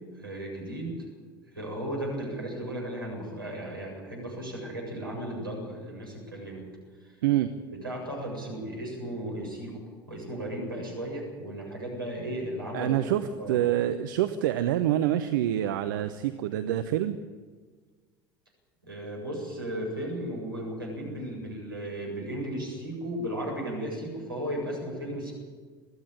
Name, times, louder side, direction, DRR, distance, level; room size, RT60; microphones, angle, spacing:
voice 1, 0.1-0.9 1.5-6.7 7.0-7.2 7.7-9.8 10.1-13.1 13.3-13.6 18.8-25.3, right 1 dB, 85° right, -1 dB, 7.5 m, -35 dB
voice 2, 12.7-17.2, right 12 dB, 65° right, 10 dB, 0.9 m, -26 dB
22.0 x 14.5 x 9.1 m, 1.4 s
figure-of-eight pair, 70°, 11 cm